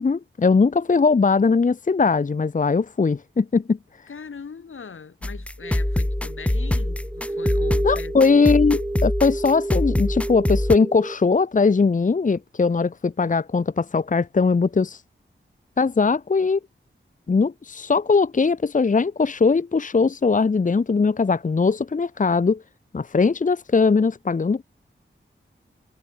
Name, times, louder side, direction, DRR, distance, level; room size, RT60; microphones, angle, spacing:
voice 1, 0.0-3.8 7.8-15.0 15.8-16.6 17.3-22.6 22.9-24.6, left 4 dB, 40° left, 0.8 m, -20 dB
voice 2, 4.1-8.4, left 5 dB, 80° left, 2.7 m, -40 dB
sound 1, 5.2-10.8, left 1 dB, 5° left, 0.3 m, -24 dB
sound 2, 5.6-11.2, right 1 dB, 10° right, 0.7 m, -31 dB
wide cardioid pair, 95°, 20 cm